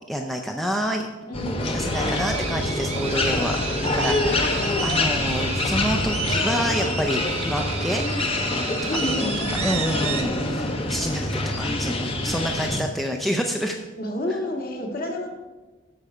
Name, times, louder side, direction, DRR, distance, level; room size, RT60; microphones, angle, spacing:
voice 1, 0.1-1.1 1.6-8.1 8.8-9.3 9.6-13.8 14.3-14.4, equal, ahead, 2 dB, 0.5 m, -28 dB
sound 1, 1.3-12.8, left 2 dB, 30° left, 0.9 m, -26 dB
sound 2, 1.9-10.2, right 5 dB, 30° right, 0.9 m, -32 dB
voice 2, 8.9-9.7 14.0-15.3, left 1 dB, 45° left, 1 dB, 1.6 m, -29 dB
13.5 x 5.5 x 5.0 m, 1.2 s
head